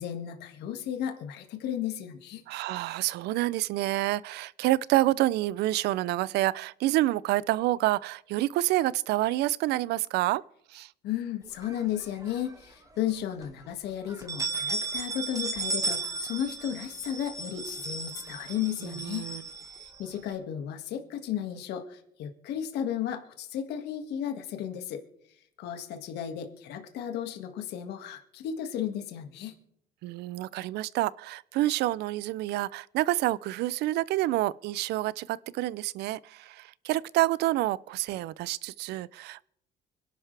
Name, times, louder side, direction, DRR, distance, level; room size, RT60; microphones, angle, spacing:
voice 1, 0.0-2.4 11.0-19.2 19.8-25.0 25.6-29.5, left 10 dB, 80° left, 2.0 m, -34 dB
voice 2, 2.5-10.4 10.7-10.9 18.8-19.4 30.0-39.5, right 16 dB, 80° right, 0.5 m, -28 dB
sound 1, 11.6-12.5 12.9-13.0 13.4-13.5 14.1-20.3, right 3 dB, 20° right, 1.7 m, -35 dB
25.5 x 11.5 x 3.4 m
cardioid pair, 110°, 17 cm